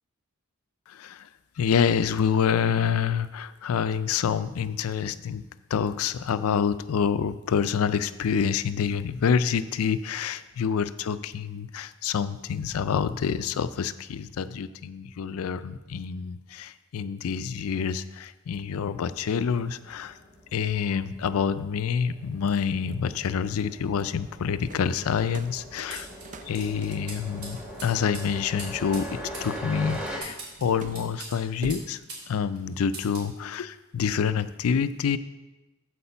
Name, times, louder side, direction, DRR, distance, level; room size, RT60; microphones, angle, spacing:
voice 1, 1.6-5.4 5.7-20.1 20.5-26.1 26.5-32.0 32.3-35.2, left 7 dB, 70° left, 14 dB, 0.4 m, -27 dB
sound 1, 18.5-30.2, equal, 5° right, 1.1 m, -42 dB
sound 2, 24.7-31.9, right 3 dB, 35° right, 0.4 m, -47 dB
sound 3, 25.9-32.3 32.5-33.3, right 3 dB, 80° right, 2.9 m, -43 dB
8.5 x 4.7 x 6.8 m, 1.1 s
head